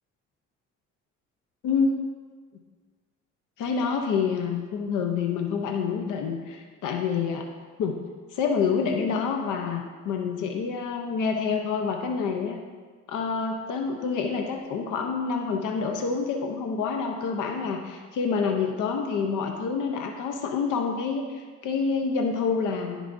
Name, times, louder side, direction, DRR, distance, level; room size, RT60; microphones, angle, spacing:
voice 1, 1.6-2.0 3.6-7.5 7.8-8.0 8.3-12.6 13.1-23.0, left 5 dB, 85° left, 3 dB, 0.8 m, -27 dB
14.5 x 4.9 x 2.6 m, 1.5 s
cardioid pair, 90°, 30 cm